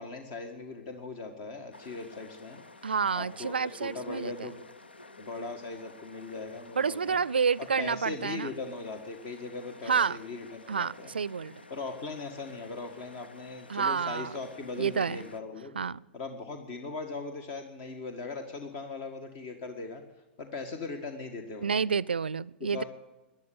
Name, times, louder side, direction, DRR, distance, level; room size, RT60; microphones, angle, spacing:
voice 1, 0.0-2.6 3.1-3.5 3.8-4.6 5.2-7.2 7.8-11.1 11.7-15.7 16.1-20.0 20.4-21.8 22.7-22.8, left 3 dB, 50° left, 1.9 m, -39 dB
sound 1, 1.7-15.4, left 3 dB, 90° left, 0.9 m, -52 dB
voice 2, 2.8-4.5 6.8-8.5 9.8-10.2 10.7-11.6 13.7-14.3 14.8-15.3 15.7-16.0 21.6-22.8, right 6 dB, 85° right, 0.4 m, -29 dB
14.5 x 10.5 x 8.5 m
hypercardioid pair, 105°, 5 cm